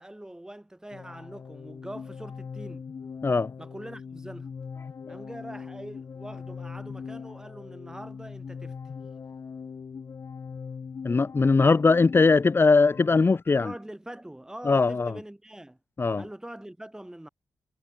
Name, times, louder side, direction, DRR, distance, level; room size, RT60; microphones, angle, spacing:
voice 1, 0.0-2.9 3.6-4.5 5.1-8.8 13.6-15.8 16.2-17.3, right 1 dB, 10° right, 4.7 m, -43 dB
sound 1, 0.9-13.3, left 6 dB, 60° left, 2.1 m, -41 dB
voice 2, 11.0-13.7 14.6-15.1 16.0-16.2, left 4 dB, 40° left, 1.0 m, -20 dB
cardioid pair, 55°, 6 cm